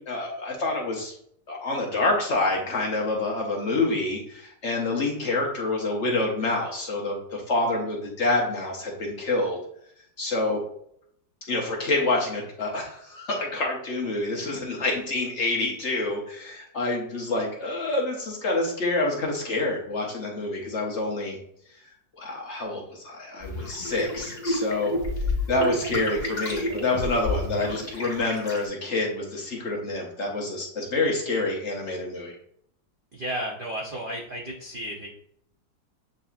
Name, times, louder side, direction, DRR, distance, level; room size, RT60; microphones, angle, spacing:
voice 1, 0.1-1.1 1.5-9.6 10.2-10.6 11.5-21.4 22.2-24.9 25.5-32.4, left 2 dB, 50° left, -1 dB, 1.0 m, -27 dB
sound 1, 23.4-28.6, left 2 dB, 30° left, 1.3 m, -30 dB
voice 2, 33.1-35.1, equal, 80° right, -2 dB, 0.4 m, -33 dB
7.6 x 2.7 x 2.4 m, 0.70 s
omnidirectional pair, 1.9 m